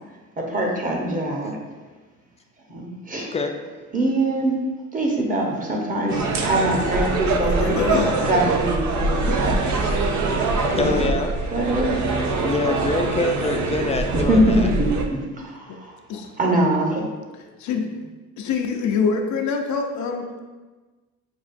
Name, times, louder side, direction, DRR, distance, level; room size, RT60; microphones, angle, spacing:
voice 1, 0.4-1.6 2.7-3.3 3.9-4.6 4.9-7.8 8.3-9.5 10.6-11.1 11.5-12.0 14.1-15.9 16.4-17.1, right 1 dB, 25° right, -1 dB, 0.9 m, -23 dB
voice 2, 3.2-3.6 10.8-11.4 12.4-14.7 16.1-16.3, left 3 dB, 20° left, 4 dB, 0.4 m, -25 dB
sound 1, 6.1-15.0, right 3 dB, 70° right, 0.6 m, -23 dB
voice 3, 7.4-8.2 15.7-15.8 16.1-16.3 17.6-18.1 18.4-20.4, left 5 dB, 70° left, 3 dB, 0.6 m, -25 dB
6.1 x 2.4 x 2.5 m, 1.3 s
cardioid pair, 90°, 30 cm